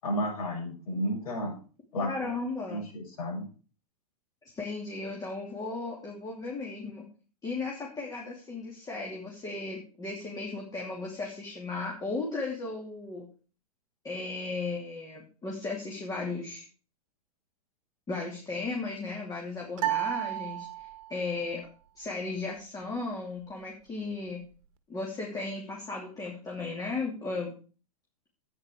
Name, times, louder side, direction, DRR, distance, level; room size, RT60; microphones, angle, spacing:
voice 1, 0.0-1.5 1.9-2.1 2.7-3.5, equal, 70° left, -2 dB, 7.3 m, -32 dB
voice 2, 2.0-2.8 4.5-7.0 7.4-13.3 14.0-16.6 18.1-21.7 22.0-24.4 24.9-27.5, left 3 dB, 20° left, -2 dB, 2.9 m, -35 dB
sound 1, 19.8-21.3, right 15 dB, 55° right, 1.3 m, -32 dB
10.5 x 9.1 x 5.0 m, 0.37 s
hypercardioid pair, 110°, 19 cm